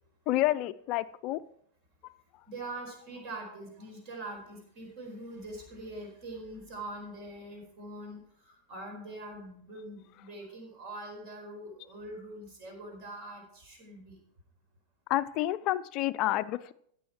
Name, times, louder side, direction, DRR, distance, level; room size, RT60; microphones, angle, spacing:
voice 1, 0.3-1.4 15.1-16.7, left 15 dB, 40° left, 16 dB, 0.5 m, -29 dB
voice 2, 2.5-14.2, right 1 dB, 45° right, 1 dB, 4.4 m, -43 dB
15.5 x 6.2 x 4.5 m, 0.65 s
figure-of-eight pair, 90°, 0 cm